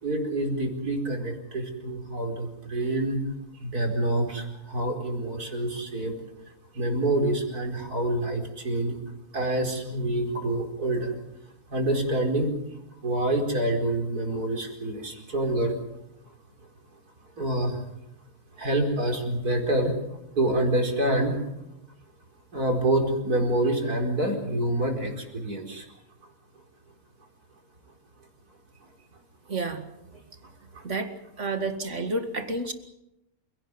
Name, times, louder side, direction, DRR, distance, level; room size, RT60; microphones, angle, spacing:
voice 1, 0.0-3.2 3.6-6.1 6.7-9.0 9.3-11.1 11.7-12.5 13.0-15.7 17.4-17.7 18.6-19.9 20.4-21.4 22.5-25.8, right 1 dB, 75° right, 2 dB, 5.1 m, -27 dB
voice 2, 29.5-29.9 30.8-31.1 31.4-32.7, right 2 dB, 50° right, 7 dB, 2.4 m, -30 dB
28.5 x 17.5 x 8.0 m, 0.87 s
omnidirectional pair, 1.6 m